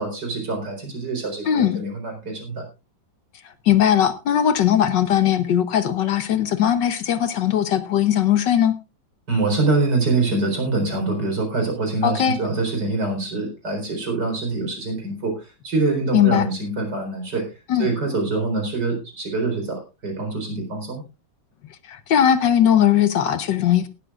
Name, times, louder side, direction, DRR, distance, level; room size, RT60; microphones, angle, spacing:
voice 1, 0.0-2.7 9.3-17.4 17.8-21.0, right 3 dB, 55° right, 4.7 m, -25 dB
voice 2, 1.5-1.8 3.7-8.8 12.0-12.4 16.1-16.4 17.7-17.9 21.9-23.9, left 10 dB, 65° left, 1.4 m, -19 dB
18.0 x 12.5 x 2.4 m
omnidirectional pair, 2.2 m